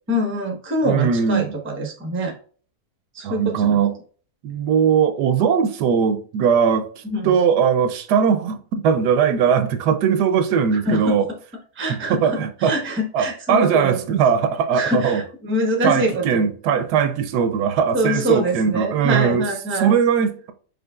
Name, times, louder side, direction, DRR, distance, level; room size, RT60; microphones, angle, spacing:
voice 1, 0.1-2.3 3.1-3.8 7.0-7.4 10.7-11.0 11.8-12.2 12.6-14.0 14.7-16.4 17.9-19.9, right 1 dB, 10° right, 0.6 m, -24 dB
voice 2, 0.8-1.5 3.2-3.9 4.4-11.3 12.1-12.8 13.1-15.2 15.8-19.5 19.7-20.5, right 7 dB, 80° right, 1.2 m, -20 dB
5.2 x 3.8 x 2.3 m
omnidirectional pair, 1.7 m